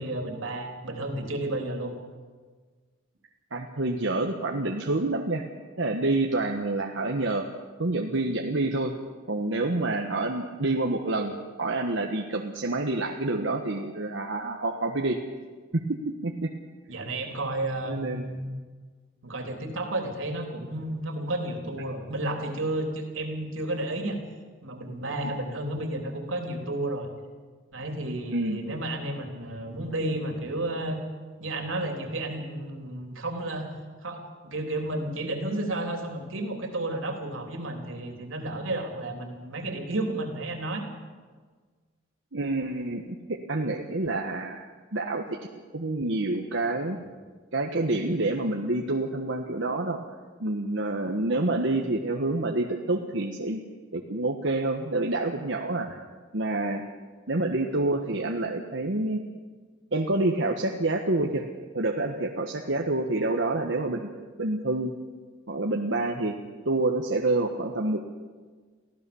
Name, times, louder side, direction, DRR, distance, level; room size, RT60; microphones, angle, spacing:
voice 1, 0.0-1.9 16.9-18.5 19.2-24.2 24.6-27.1 27.7-31.0 31.4-33.7 34.0-40.8, right 1 dB, 90° right, 3 dB, 3.5 m, -32 dB
voice 2, 3.5-5.4 5.8-7.4 7.8-8.9 9.3-15.2 15.7-16.5 17.8-18.3 28.3-28.6 42.3-44.7 44.9-45.4 45.7-47.0 47.5-50.0 50.4-53.6 53.9-56.0 56.3-56.8 57.3-59.2 59.9-61.4 61.7-64.1 64.4-64.9 65.5-66.3 66.6-68.0, right 2 dB, 70° right, 1 dB, 1.3 m, -27 dB
24.0 x 15.5 x 7.1 m, 1.5 s
head